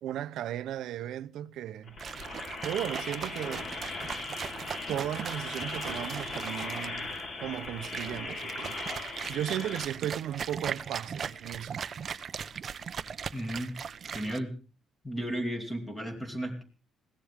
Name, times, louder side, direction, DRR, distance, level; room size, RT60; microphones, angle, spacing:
voice 1, 0.0-2.0 2.6-3.7 4.9-7.1 7.4-11.8, right 11 dB, 65° right, 0.8 m, -36 dB
sound 1, 1.9-9.8, left 3 dB, 35° left, 4.5 m, -38 dB
sound 2, 2.0-14.4, right 7 dB, 35° right, 0.7 m, -39 dB
voice 2, 13.3-13.7 14.1-14.5 15.0-16.6, right 1 dB, 10° left, 2.7 m, -34 dB
21.0 x 16.5 x 3.6 m
cardioid pair, 165°, 0 cm